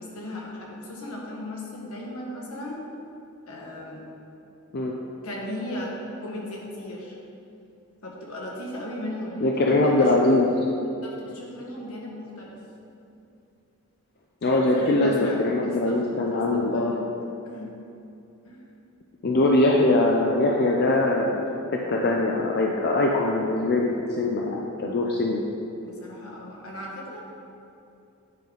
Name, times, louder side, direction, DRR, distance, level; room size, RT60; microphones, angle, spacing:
voice 1, 0.0-2.8 3.5-4.0 5.2-5.9 6.2-7.2 8.0-10.3 11.0-12.6 14.5-17.0 17.4-17.8 18.4-18.6 25.8-27.2, left 1 dB, 75° left, -3 dB, 1.4 m, -36 dB
voice 2, 9.4-10.5 14.4-16.9 19.2-21.4 21.7-25.4, left 2 dB, 45° left, -1 dB, 0.5 m, -22 dB
9.2 x 3.9 x 5.0 m, 2.8 s
head